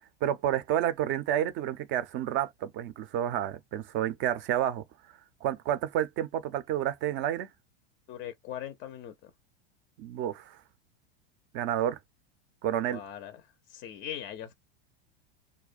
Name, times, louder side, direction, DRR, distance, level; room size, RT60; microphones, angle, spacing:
voice 1, 0.2-4.8 5.4-7.5 10.0-10.6 11.5-12.0 12.6-13.0, right 11 dB, 35° right, 0.4 m, -30 dB
voice 2, 8.1-9.3 12.9-13.4 13.7-14.6, left 10 dB, 30° left, 0.5 m, -40 dB
2.4 x 2.1 x 2.4 m
supercardioid pair, 120°, 32 cm